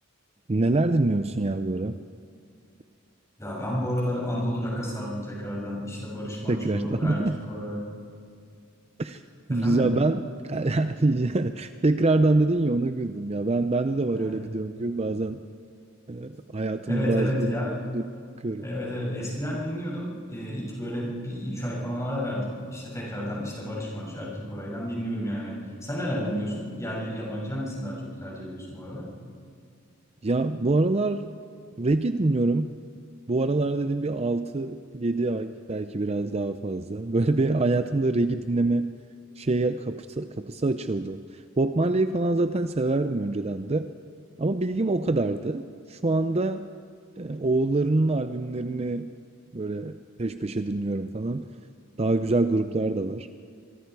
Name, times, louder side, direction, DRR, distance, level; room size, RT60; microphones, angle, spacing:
voice 1, 0.5-2.0 6.5-7.4 9.0-9.2 9.5-15.4 16.1-18.1 18.4-18.6 30.2-31.3 31.8-32.7 33.3-38.9 39.4-43.9 44.4-46.7 47.2-49.1 49.5-51.5 52.0-53.3, right 2 dB, 30° right, 9 dB, 0.6 m, -25 dB
voice 2, 3.4-7.8 9.5-9.9 14.1-14.5 16.8-17.8 18.6-29.1, equal, 15° left, -4 dB, 7.0 m, -31 dB
24.5 x 24.5 x 4.7 m, 2.3 s
head